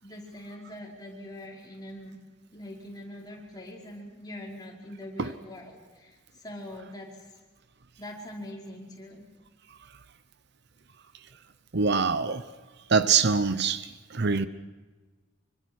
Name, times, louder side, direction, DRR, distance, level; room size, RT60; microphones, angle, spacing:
voice 1, 0.0-2.2 2.5-7.2 8.0-9.2, left 1 dB, 20° left, 5.4 m, -43 dB
voice 2, 11.7-12.4 12.9-13.9 14.1-14.5, right 5 dB, 55° right, 0.8 m, -24 dB
25.5 x 25.0 x 6.4 m
head